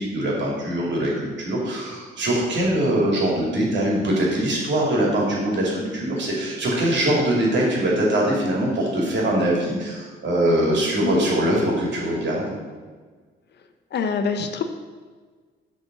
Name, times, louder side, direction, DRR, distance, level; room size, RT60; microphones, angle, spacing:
voice 1, 0.0-12.5, right 1 dB, 65° right, -2 dB, 2.6 m, -22 dB
voice 2, 13.9-14.6, left 5 dB, 60° left, 7 dB, 0.7 m, -25 dB
6.9 x 4.3 x 6.7 m, 1.5 s
cardioid pair, 90°, 20 cm